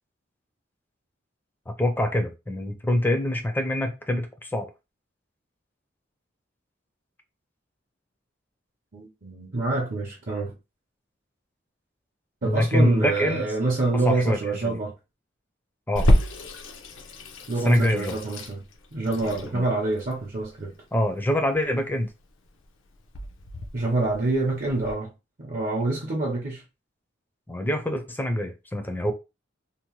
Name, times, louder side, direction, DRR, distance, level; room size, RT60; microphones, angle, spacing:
voice 1, 1.7-4.7 12.4-13.4 14.1-14.4 14.6-14.8 15.9-16.1 17.6-18.2 19.5-19.6 20.9-22.1 27.5-29.1, left 1 dB, 10° left, 0.4 m, -25 dB
voice 2, 8.9-10.5 12.4-14.9 17.5-18.6 18.9-20.7 23.7-25.1 25.4-26.6, right 2 dB, 45° right, 0.6 m, -26 dB
Water tap faucet / Sink (filling or washing), 16.0-24.9, equal, 75° left, 0.5 m, -29 dB
2.8 x 2.0 x 3.0 m
head